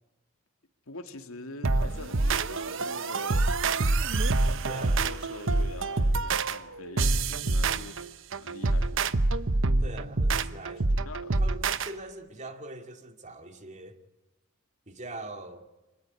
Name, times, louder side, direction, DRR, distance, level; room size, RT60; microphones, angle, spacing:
voice 1, 0.9-3.4 4.4-9.0 10.9-11.4, left 2 dB, 80° left, 2.3 m, -44 dB
sound 1, 1.6-11.9, right 3 dB, 65° right, 1.0 m, -26 dB
voice 2, 4.6-5.1 9.8-10.9 11.4-14.0 14.9-15.7, right 2 dB, 35° right, 2.4 m, -42 dB
26.0 x 19.0 x 9.8 m
head